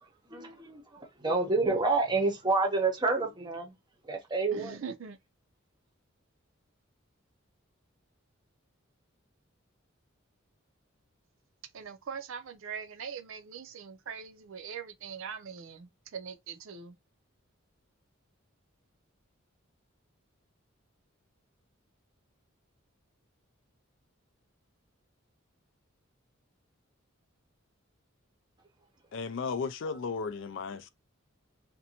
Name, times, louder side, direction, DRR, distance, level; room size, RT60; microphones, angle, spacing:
voice 1, 0.0-3.7 4.0-4.8, right 3 dB, 20° right, 0.7 m, -29 dB
voice 2, 4.5-5.2 11.7-16.9, right 6 dB, 70° right, 0.5 m, -42 dB
voice 3, 29.1-30.9, left 5 dB, 60° left, 0.4 m, -35 dB
2.6 x 2.1 x 2.8 m
head